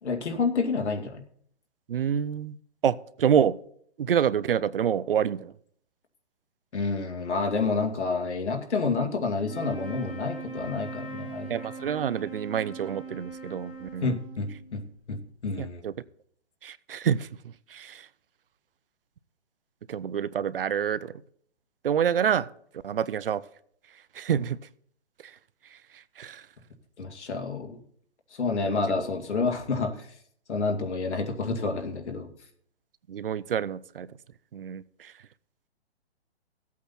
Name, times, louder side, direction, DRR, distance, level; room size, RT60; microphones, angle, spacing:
voice 1, 0.0-1.2 6.7-11.5 14.0-14.8 15.1-15.8 27.0-27.8 28.4-30.1 30.5-32.3, left 4 dB, 85° left, 2.3 m, -29 dB
voice 2, 1.9-2.6 2.8-3.6 4.0-5.5 11.5-14.2 15.6-15.9 16.6-18.1 19.9-21.1 21.8-22.5 22.8-23.4 24.1-24.6 25.2-25.4 25.7-26.5 28.7-29.0 33.1-34.1 34.5-35.1, right 8 dB, 55° right, 0.6 m, -27 dB
sound 1, 9.4-14.8, right 4 dB, 20° left, 4.9 m, -41 dB
15.0 x 8.4 x 4.3 m
hypercardioid pair, 170°, 33 cm